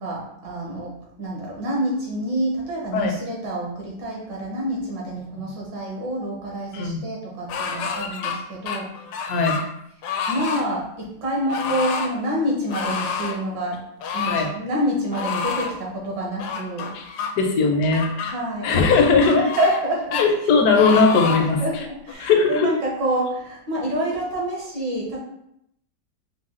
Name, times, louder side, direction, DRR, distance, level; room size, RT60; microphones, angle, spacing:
voice 1, 0.0-0.9 1.2-8.9 10.3-13.8 14.1-16.9 18.3-18.7 19.3-20.2 20.7-20.9 21.6-25.2, right 1 dB, 75° right, -3 dB, 1.7 m, -27 dB
sound 1, 7.5-8.4 8.7-9.7 10.0-10.7 11.5-12.1 12.7-13.4 14.0-14.5 15.1-15.7 16.4-17.3 17.9-18.3 19.0-19.8 20.1-20.3 20.7-21.5 22.1-22.2, left 6 dB, 90° left, 1.3 m, -28 dB
voice 2, 17.4-18.3 18.6-19.4 20.2-21.6 22.2-22.7, left 4 dB, 65° left, 3 dB, 1.0 m, -19 dB
4.7 x 2.2 x 3.7 m, 0.75 s
omnidirectional pair, 1.9 m